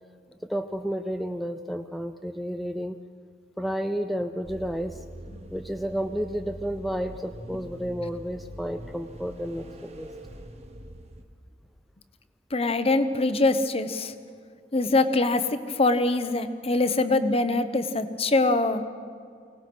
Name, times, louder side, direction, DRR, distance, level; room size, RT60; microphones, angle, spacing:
voice 1, 0.4-3.0 3.6-5.0 5.5-10.1, equal, ahead, 6 dB, 0.5 m, -31 dB
sound 1, 4.4-11.2, right 1 dB, 35° right, 1.3 m, -43 dB
voice 2, 12.5-14.1 14.7-18.8, left 2 dB, 35° left, 10 dB, 0.9 m, -23 dB
24.0 x 18.5 x 6.2 m, 2.2 s
head